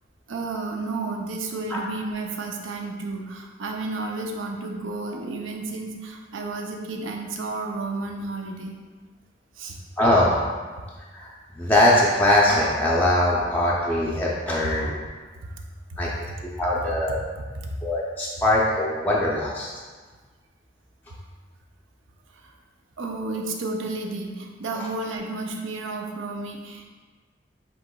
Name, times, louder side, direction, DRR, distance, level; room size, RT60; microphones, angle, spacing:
voice 1, 0.3-8.7 9.6-9.8 15.4-15.6 17.4-17.7 22.4-22.5 23.0-26.9, right 3 dB, 85° right, 2 dB, 0.6 m, -32 dB
voice 2, 10.0-10.4 11.1-14.9 16.0-16.1 16.6-17.2 17.8-19.7 24.8-24.9, left 1 dB, 10° left, -6 dB, 0.4 m, -21 dB
7.5 x 2.9 x 2.3 m, 1.4 s
head